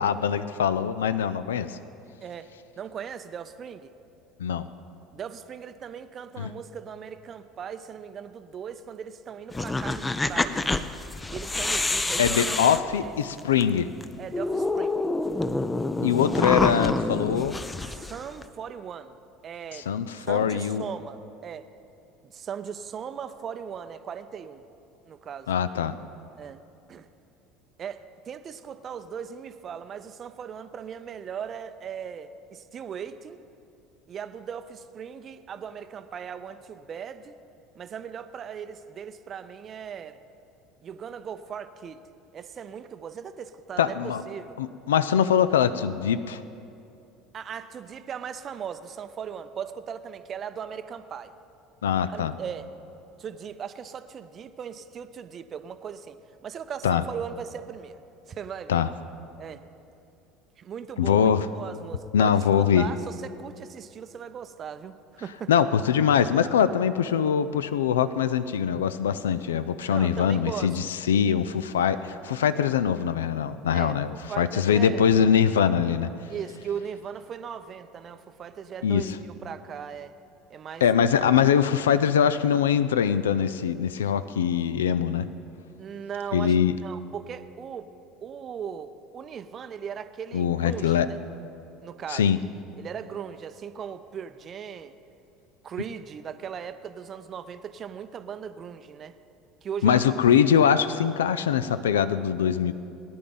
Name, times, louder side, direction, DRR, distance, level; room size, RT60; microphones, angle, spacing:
voice 1, 0.0-1.8 4.4-4.7 6.4-6.5 12.2-13.9 16.0-17.6 19.7-20.8 25.5-26.0 43.8-44.2 44.6-46.4 51.8-52.3 56.8-57.0 58.7-58.9 61.0-61.5 62.1-62.8 65.5-76.1 78.8-79.1 80.8-85.3 86.3-86.8 90.3-91.1 92.1-92.4 99.8-102.7, left 8 dB, 70° left, 14 dB, 0.4 m, -23 dB
voice 2, 2.2-3.9 5.1-10.7 11.3-12.6 13.0-13.1 14.2-15.0 17.8-19.2 19.4-19.9 20.2-21.7 22.2-24.6 25.0-25.5 26.4-26.6 26.9-27.1 27.8-33.4 34.1-37.4 37.7-40.2 40.8-42.1 42.3-44.6 47.3-51.3 52.1-52.7 53.2-58.0 58.3-58.9 59.4-59.6 60.6-65.5 69.9-70.8 73.7-75.0 76.3-80.2 80.5-80.8 85.8-86.5 86.8-87.9 88.2-91.2 91.8-92.3 92.8-95.0 95.6-99.2 99.6-100.1, right 7 dB, 35° right, 12 dB, 0.6 m, -38 dB
sound 1, 9.5-13.6 14.0-14.1 14.3-18.4, left 2 dB, 15° left, 0.5 m, -27 dB
18.0 x 10.5 x 3.9 m, 2.7 s
figure-of-eight pair, 65°, 0 cm